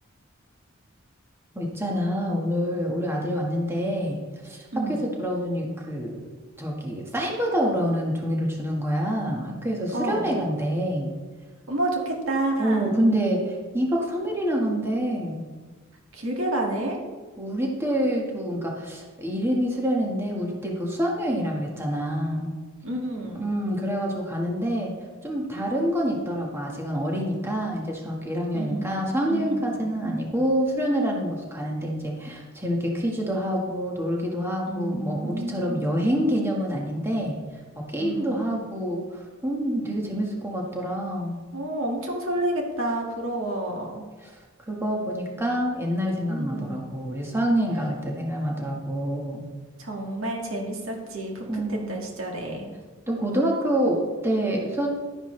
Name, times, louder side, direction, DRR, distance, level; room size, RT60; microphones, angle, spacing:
voice 1, 1.5-6.2 6.6-11.1 12.6-15.4 17.4-22.5 23.3-24.9 25.2-37.4 37.7-41.4 44.2-44.3 44.7-49.4 51.5-52.0 53.1-54.9, equal, 10° right, -2 dB, 1.6 m, -27 dB
voice 2, 4.7-5.0 9.9-10.3 11.7-13.0 16.1-17.0 21.3-21.5 22.8-23.5 28.5-29.0 29.3-29.9 34.7-36.1 38.0-38.6 41.5-44.1 46.3-46.8 49.8-52.7, right 1 dB, 80° right, 0 dB, 2.2 m, -30 dB
12.0 x 10.0 x 3.3 m, 1.4 s
head